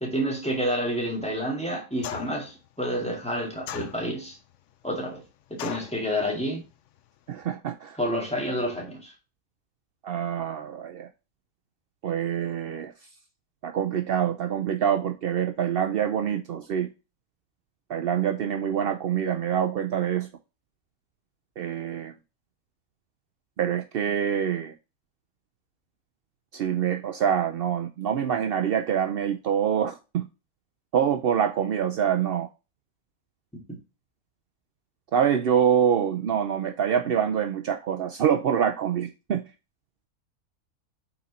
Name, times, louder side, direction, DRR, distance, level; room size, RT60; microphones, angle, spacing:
voice 1, 0.0-4.4 4.8-5.2 5.5-6.6 8.0-9.1, equal, 5° left, 2.0 m, -29 dB
sound 1, 2.0-2.5 3.7-4.3 5.6-6.0, left 11 dB, 65° left, 0.8 m, -36 dB
voice 2, 7.3-8.0 10.0-11.1 12.0-12.9 13.6-16.9 17.9-20.3 21.6-22.1 23.6-24.7 26.5-30.2 30.9-32.5 35.1-39.4, right 8 dB, 75° right, 0.5 m, -25 dB
5.7 x 4.2 x 4.0 m
omnidirectional pair, 1.6 m